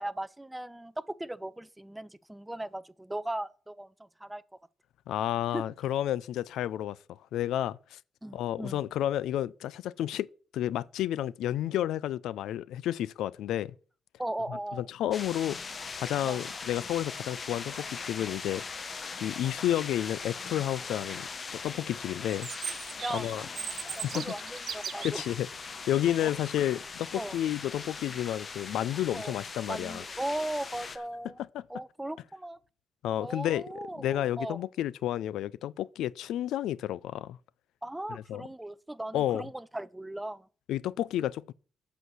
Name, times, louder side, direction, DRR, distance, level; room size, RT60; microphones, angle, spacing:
voice 1, 0.0-4.4 5.5-5.6 8.2-8.8 14.2-14.9 16.3-16.4 19.4-19.5 23.0-23.5 24.0-25.2 26.2-26.3 27.1-27.4 29.1-29.3 29.7-31.4 31.7-32.6 33.2-34.6 37.8-40.5, right 1 dB, 10° right, 0.5 m, -37 dB
voice 2, 5.1-7.0 7.3-8.0 8.3-10.3 10.5-13.7 14.5-15.6 16.0-18.6 19.2-22.5 23.1-23.4 24.0-24.2 25.0-25.5 25.9-30.0 31.5-31.6 33.0-33.6 34.0-37.4 38.1-38.4 39.1-39.5 40.7-41.5, left 12 dB, 85° left, 0.4 m, -31 dB
sound 1, 15.1-31.0, left 4 dB, 40° left, 0.9 m, -40 dB
Chirp tweet, 22.3-25.3, right 8 dB, 55° right, 0.6 m, -38 dB
7.9 x 6.3 x 7.6 m
cardioid pair, 90°, 0 cm